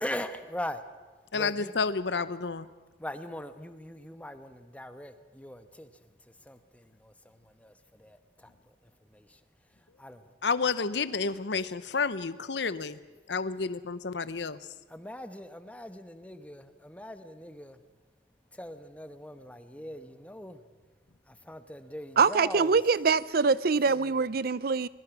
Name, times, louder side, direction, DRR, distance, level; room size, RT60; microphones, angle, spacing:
voice 1, 0.0-0.8 1.3-1.7 3.0-5.9 6.5-7.1 7.6-7.7 8.0-8.2 9.1-9.2 10.0-10.2 14.9-17.8 18.6-20.6 21.5-22.8 23.9-24.0, left 1 dB, 10° left, 10 dB, 1.1 m, -40 dB
voice 2, 1.3-2.7 10.4-13.0 13.3-14.6, left 4 dB, 70° left, 15 dB, 0.8 m, -30 dB
voice 3, 22.2-24.9, right 5 dB, 55° right, 19 dB, 0.6 m, -24 dB
24.5 x 21.5 x 6.1 m, 1.3 s
head